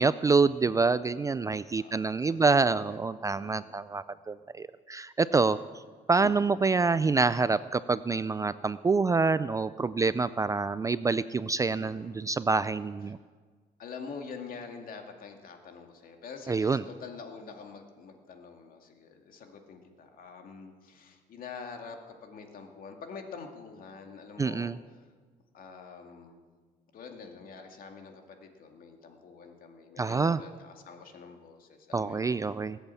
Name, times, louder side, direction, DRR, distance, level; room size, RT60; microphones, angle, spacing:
voice 1, 0.0-5.6 6.1-13.2 16.5-16.8 24.4-24.8 30.0-30.4 31.9-32.8, right 4 dB, 20° right, 15 dB, 0.4 m, -26 dB
voice 2, 1.7-3.0 3.3-3.8 6.2-6.6 11.8-12.1 13.8-25.0 25.5-26.4 26.9-32.6, left 5 dB, 55° left, 4 dB, 2.3 m, -46 dB
19.0 x 8.1 x 8.4 m, 1.5 s
cardioid pair, 110°, 17 cm